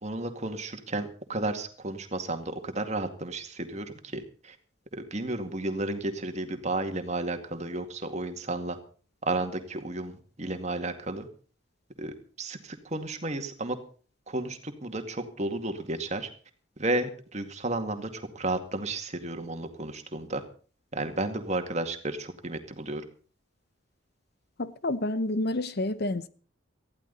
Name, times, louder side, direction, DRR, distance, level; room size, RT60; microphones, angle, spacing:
voice 1, 0.0-4.6 5.1-8.8 9.2-11.3 12.0-13.8 14.3-16.3 16.8-20.4 20.9-23.0, right 2 dB, 35° right, 2.2 m, -32 dB
voice 2, 24.6-26.3, left 1 dB, 55° left, 0.9 m, -29 dB
19.5 x 14.5 x 4.1 m
head